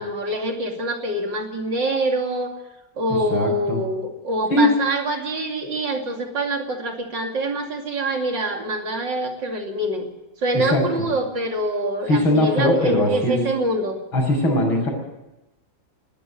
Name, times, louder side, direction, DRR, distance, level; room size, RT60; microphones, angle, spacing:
voice 1, 0.0-2.5 3.0-10.1 10.4-14.0, right 1 dB, 65° right, 3 dB, 3.3 m, -25 dB
voice 2, 3.3-3.8 4.5-4.7 10.5-10.8 12.1-13.4 14.1-14.9, left 1 dB, 85° left, 2 dB, 6.8 m, -20 dB
20.5 x 13.0 x 10.0 m, 0.98 s
omnidirectional pair, 2.2 m